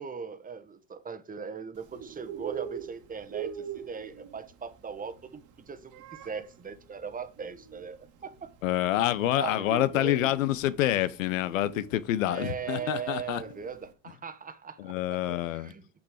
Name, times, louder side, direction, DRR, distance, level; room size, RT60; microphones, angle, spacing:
voice 1, 0.0-8.5 9.3-10.5 12.2-15.9, right 6 dB, 20° right, 1.2 m, -39 dB
Bird, 1.8-13.9, right 10 dB, 50° right, 1.8 m, -44 dB
voice 2, 8.6-13.4 14.8-15.7, left 14 dB, 85° left, 0.8 m, -27 dB
6.3 x 6.1 x 4.9 m
hypercardioid pair, 90°, 38 cm